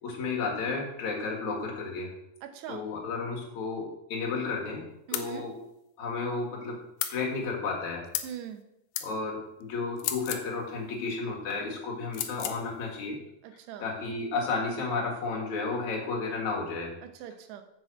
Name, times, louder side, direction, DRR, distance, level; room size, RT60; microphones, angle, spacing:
voice 1, 0.0-2.1 2.7-5.5 6.0-6.8 7.1-8.0 9.0-13.2 13.8-16.9, left 4 dB, 55° left, -2 dB, 2.7 m, -32 dB
voice 2, 2.4-2.9 5.1-5.5 8.2-8.6 13.4-13.9 17.0-17.6, right 9 dB, 85° right, 7 dB, 3.0 m, -41 dB
sound 1, 5.1-5.3 7.0-7.2 8.1-8.4 8.9-9.1 10.0-10.5 12.1-12.6, left 11 dB, 85° left, 2.1 m, -33 dB
7.5 x 5.9 x 6.1 m, 0.83 s
omnidirectional pair, 4.7 m